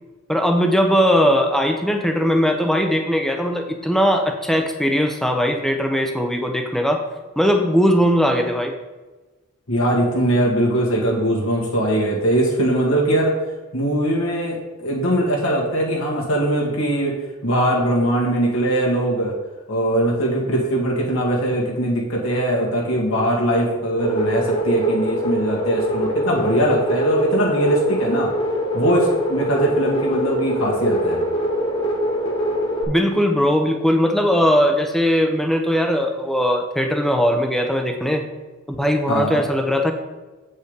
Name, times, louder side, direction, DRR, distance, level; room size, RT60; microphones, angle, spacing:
voice 1, 0.3-7.0 7.4-8.7 32.9-38.3 38.7-39.9, equal, ahead, 4 dB, 0.8 m, -19 dB
voice 2, 9.7-13.3 13.7-17.2 17.4-19.3 19.7-28.3 28.7-31.2 39.1-39.4, right 1 dB, 75° left, -3 dB, 2.2 m, -21 dB
sound 1, 24.0-32.8, equal, 25° left, 1.6 m, -23 dB
8.1 x 5.4 x 5.2 m, 1.2 s
head